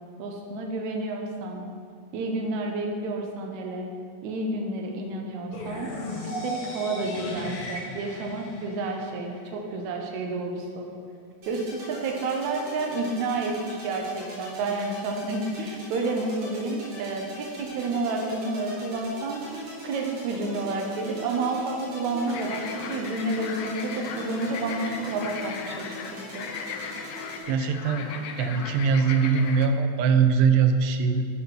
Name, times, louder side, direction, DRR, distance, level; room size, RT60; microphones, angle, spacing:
voice 1, 0.2-1.6 2.1-3.9 4.2-5.9 6.2-10.9 11.5-19.4 19.8-25.8 26.1-26.5, right 2 dB, 70° right, 1 dB, 2.1 m, -30 dB
sound 1, 5.5-9.5, equal, 60° left, 2.1 m, -36 dB
sound 2, 11.4-27.4, equal, 50° right, 2.5 m, -42 dB
sound 3, 22.3-29.7, left 6 dB, 80° left, 2.0 m, -37 dB
voice 2, 27.5-28.1 28.4-31.3, right 6 dB, 90° right, 7 dB, 2.2 m, -22 dB
8.3 x 4.3 x 6.0 m, 2.1 s
omnidirectional pair, 3.6 m